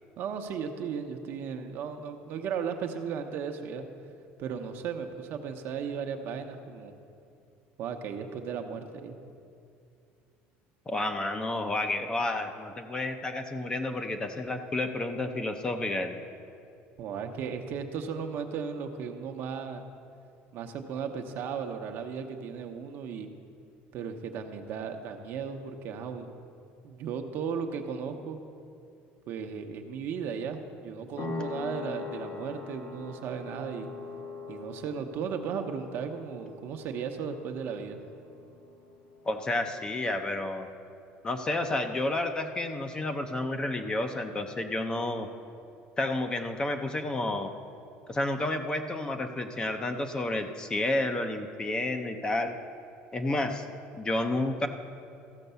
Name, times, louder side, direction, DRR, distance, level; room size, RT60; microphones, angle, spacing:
voice 1, 0.2-3.9 4.4-6.9 7.8-9.2 17.0-19.8 20.5-23.3 23.9-26.3 26.8-28.4 29.3-33.9 34.5-38.0, right 6 dB, 55° right, 5 dB, 0.9 m, -35 dB
voice 2, 10.9-16.2 39.2-40.7 41.2-45.3 46.0-47.5 48.1-52.6 53.1-53.7 54.0-54.7, left 2 dB, 20° left, 6 dB, 0.6 m, -30 dB
sound 1, 31.2-39.5, left 3 dB, 75° left, 1.5 m, -42 dB
14.0 x 5.3 x 6.8 m, 2.5 s
cardioid pair, 130°, 4 cm